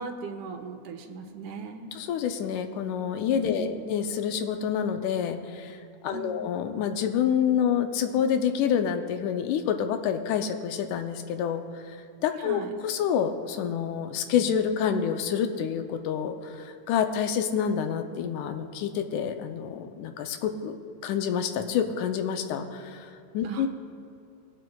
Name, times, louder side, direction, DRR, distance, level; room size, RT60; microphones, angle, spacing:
voice 1, 0.0-2.0 3.5-3.8 6.1-6.5 12.4-12.7 23.4-23.7, right 5 dB, 85° right, 4 dB, 2.2 m, -38 dB
voice 2, 1.9-20.8 21.0-23.7, left 8 dB, 90° left, 7 dB, 2.1 m, -28 dB
20.0 x 7.5 x 2.3 m, 2.7 s
omnidirectional pair, 3.5 m